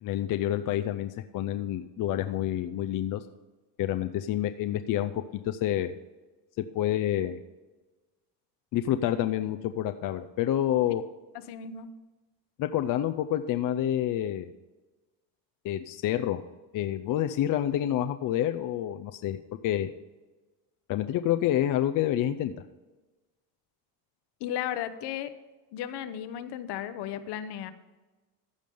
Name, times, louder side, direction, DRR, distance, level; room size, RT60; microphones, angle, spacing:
voice 1, 0.0-3.2 3.8-6.0 6.7-7.4 8.7-11.0 12.6-14.5 15.6-16.4 16.7-19.4 19.6-19.9 20.9-22.5, left 12 dB, 45° left, 8 dB, 0.5 m, -28 dB
voice 2, 11.5-11.9 24.4-25.3 25.7-27.7, left 10 dB, 60° left, 12 dB, 0.9 m, -35 dB
15.0 x 5.2 x 5.3 m, 1.2 s
cardioid pair, 120°, 44 cm